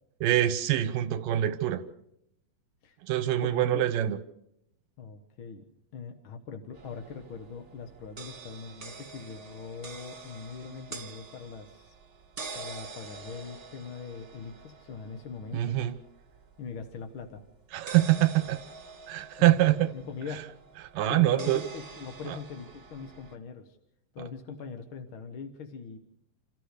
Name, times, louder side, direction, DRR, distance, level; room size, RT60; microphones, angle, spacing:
voice 1, 0.2-1.8 3.0-4.2 15.5-15.9 17.7-18.6 19.1-19.9 20.9-21.6 22.3-22.4, right 13 dB, 80° right, 12 dB, 2.6 m, -24 dB
voice 2, 3.4-3.9 5.0-11.9 12.5-15.7 16.6-17.4 19.4-19.5 19.9-20.5 21.1-23.8 24.1-26.0, left 5 dB, 55° left, 7 dB, 1.5 m, -42 dB
sound 1, 6.7-23.3, right 4 dB, 55° right, 0.4 m, -47 dB
28.5 x 13.5 x 6.7 m, 0.80 s
omnidirectional pair, 3.9 m